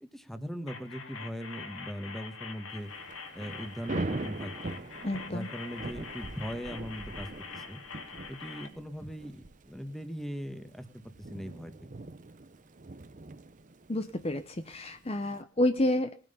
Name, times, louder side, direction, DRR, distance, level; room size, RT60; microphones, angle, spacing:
voice 1, 0.0-2.9 3.3-4.8 5.3-7.8 8.3-11.7, equal, ahead, 8 dB, 1.4 m, -40 dB
sound 1, 0.7-8.7, left 5 dB, 75° left, 2.4 m, -44 dB
Thunder / Rain, 2.8-15.4, right 2 dB, 35° right, 0.7 m, -42 dB
voice 2, 5.0-5.5 13.9-16.1, left 1 dB, 30° left, 9 dB, 0.8 m, -29 dB
19.5 x 9.0 x 5.5 m, 0.38 s
head